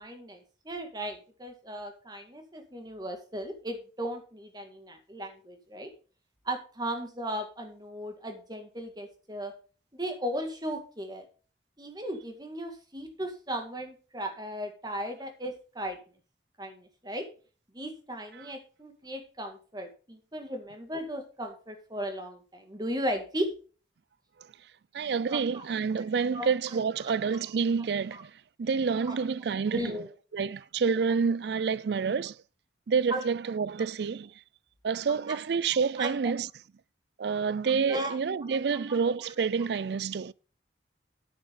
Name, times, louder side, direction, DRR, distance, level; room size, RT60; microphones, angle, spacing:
voice 1, 0.0-5.9 6.4-9.5 9.9-11.3 11.8-16.0 16.6-17.3 17.7-23.5 25.3-25.7 26.3-26.5 28.1-28.2 29.1-29.2 29.7-30.1 33.1-33.2 35.3-35.4 36.0-36.1 37.9-38.2, equal, 20° right, 2.0 m, -36 dB
voice 2, 24.9-28.3 28.6-30.0 30.3-32.4 32.9-34.3 34.8-36.5 37.2-40.3, right 5 dB, 65° right, 0.4 m, -28 dB
10.5 x 8.9 x 3.7 m
head